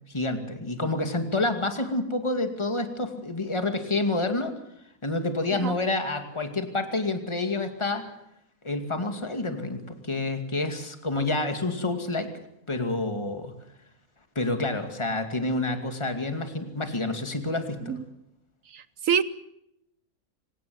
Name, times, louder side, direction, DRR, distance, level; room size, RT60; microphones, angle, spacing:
voice 1, 0.1-4.5 5.0-8.0 8.6-12.3 12.7-13.5 14.4-17.9, left 2 dB, 20° left, 7 dB, 2.4 m, -28 dB
voice 2, 18.7-19.2, right 7 dB, 60° right, 15 dB, 1.4 m, -26 dB
25.5 x 17.5 x 7.8 m, 0.80 s
omnidirectional pair, 1.6 m